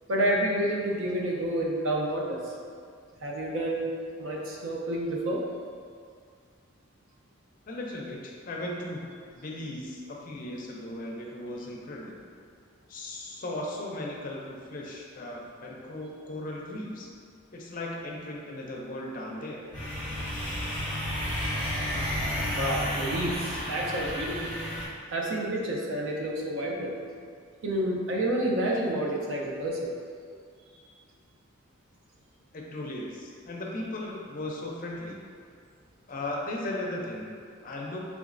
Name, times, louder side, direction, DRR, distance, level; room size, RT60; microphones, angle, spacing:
voice 1, 0.1-2.5 3.2-5.4 22.0-24.5 25.1-26.9 27.6-29.8, right 1 dB, 70° right, -2 dB, 0.5 m, -29 dB
voice 2, 7.7-9.0 9.3-12.2 12.9-17.1 17.5-19.6 32.5-35.2 36.1-37.3 37.6-38.0, left 1 dB, 40° left, -2 dB, 0.4 m, -37 dB
sound 1, 19.7-24.9, equal, 10° left, 1.0 m, -31 dB
3.4 x 3.0 x 2.5 m, 2.2 s
head